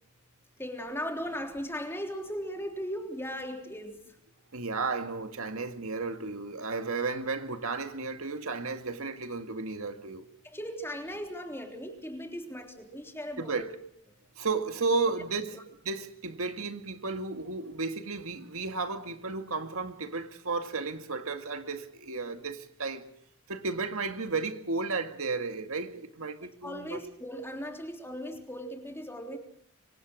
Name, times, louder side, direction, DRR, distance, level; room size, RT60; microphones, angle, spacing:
voice 1, 0.6-4.2 10.4-13.7 15.5-15.6 26.6-29.4, equal, 10° left, 3.5 m, -38 dB
voice 2, 4.5-10.3 13.4-13.7 14.4-23.1 23.5-27.0, right 4 dB, 70° right, 2.1 m, -33 dB
26.0 x 25.0 x 6.4 m
head